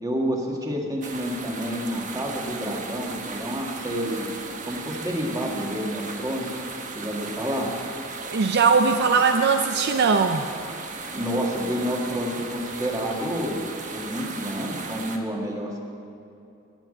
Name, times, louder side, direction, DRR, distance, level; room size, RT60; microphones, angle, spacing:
voice 1, 0.0-4.3 4.6-6.5 6.9-7.7 11.1-13.6 13.9-15.8, equal, 15° right, -1 dB, 1.8 m, -29 dB
sound 1, 1.0-15.2, right 4 dB, 40° right, 1.2 m, -36 dB
voice 2, 8.3-10.5, right 5 dB, 55° right, 6 dB, 0.5 m, -20 dB
15.0 x 5.9 x 10.0 m, 2.7 s
head